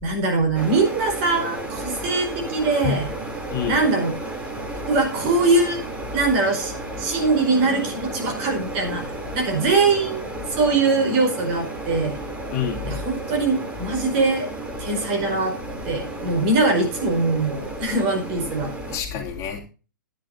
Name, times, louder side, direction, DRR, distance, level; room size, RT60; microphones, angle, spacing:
voice 1, 0.0-3.1 3.7-4.1 4.9-5.8 6.1-9.0 9.3-12.2 12.8-14.5 14.8-15.6 15.8-18.7, right 3 dB, 40° right, 5.0 m, -22 dB
sound 1, 0.5-19.0, right 2 dB, 15° right, 3.1 m, -33 dB
voice 2, 12.5-13.0 18.9-19.6, left 7 dB, 30° left, 2.8 m, -27 dB
14.5 x 10.5 x 2.7 m
figure-of-eight pair, 110°, 10 cm